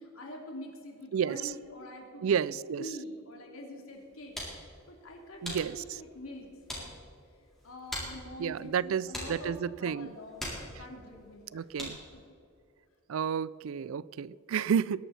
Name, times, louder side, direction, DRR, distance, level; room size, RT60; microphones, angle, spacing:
voice 1, 0.0-2.4 2.8-6.9 7.6-11.6 12.2-12.3 13.8-13.9, left 1 dB, 80° left, 0 dB, 3.1 m, -45 dB
voice 2, 1.1-1.5 2.2-2.9 5.4-6.0 8.4-10.1 11.5-12.0 13.1-15.0, right 7 dB, 75° right, 20 dB, 0.4 m, -31 dB
sound 1, 3.9-12.2, equal, ahead, 4.1 m, -44 dB
20.5 x 11.5 x 4.3 m, 2.5 s
head